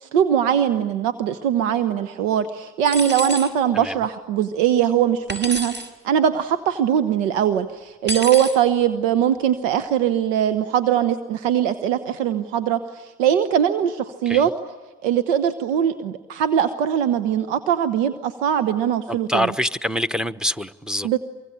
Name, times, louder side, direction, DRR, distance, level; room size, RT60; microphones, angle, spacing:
voice 1, 0.0-5.7 6.0-14.5 15.0-19.5 21.0-21.2, right 9 dB, 90° right, 1.1 m, -21 dB
sound 1, 2.9-3.5 5.3-5.9 8.1-8.6, right 1 dB, 30° right, 6.2 m, -29 dB
voice 2, 19.1-21.1, equal, ahead, 1.1 m, -25 dB
24.5 x 24.0 x 8.8 m
hypercardioid pair, 65°, 36 cm